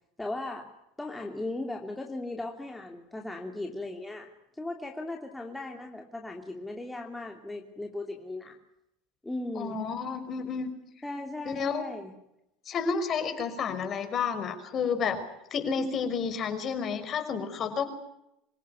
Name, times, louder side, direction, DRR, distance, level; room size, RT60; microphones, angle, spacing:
voice 1, 0.2-0.7 1.0-4.3 4.6-8.5 9.2-9.8 11.0-12.1, left 2 dB, 5° left, 2 dB, 2.8 m, -37 dB
voice 2, 9.6-10.7 11.5-11.8 12.7-15.2 15.5-17.8, left 6 dB, 35° left, 8 dB, 5.5 m, -30 dB
26.5 x 17.0 x 9.7 m, 0.85 s
supercardioid pair, 120°, 0 cm